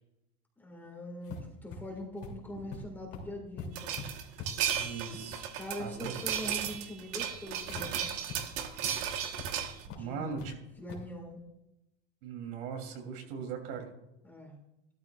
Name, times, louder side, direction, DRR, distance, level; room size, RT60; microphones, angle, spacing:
voice 1, 0.6-4.0 5.6-8.1 9.9-10.3 10.8-11.4 14.2-14.6, left 1 dB, 5° left, 1 dB, 1.8 m, -42 dB
sound 1, 1.2-7.9 8.3-8.4 8.7-8.9 9.4-9.5 9.9-10.5 10.9-11.1, left 4 dB, 50° left, 2.8 m, -45 dB
sound 2, 3.8-9.9, right 9 dB, 50° right, 1.3 m, -35 dB
voice 2, 4.7-5.5 5.8-6.1 10.0-10.6 12.2-13.9, right 6 dB, 70° right, 3 dB, 3.1 m, -39 dB
14.5 x 13.0 x 2.4 m, 0.89 s
cardioid pair, 160°, 30 cm